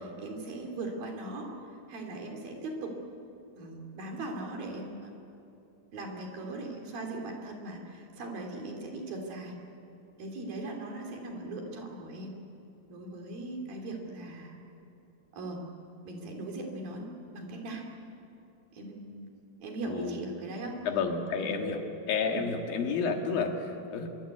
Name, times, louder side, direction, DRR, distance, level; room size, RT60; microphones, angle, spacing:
voice 1, 0.2-3.0 3.5-5.1 5.9-9.6 10.2-12.3 12.9-14.6 15.3-15.7 16.0-17.8 18.7-20.8 21.4-21.6 22.2-22.5, right 2 dB, 80° right, 1 dB, 4.9 m, -39 dB
voice 2, 19.8-20.2 20.8-21.8 22.1-24.1, left 5 dB, 80° left, 3 dB, 3.8 m, -30 dB
24.5 x 23.5 x 8.3 m, 2.7 s
omnidirectional pair, 4.1 m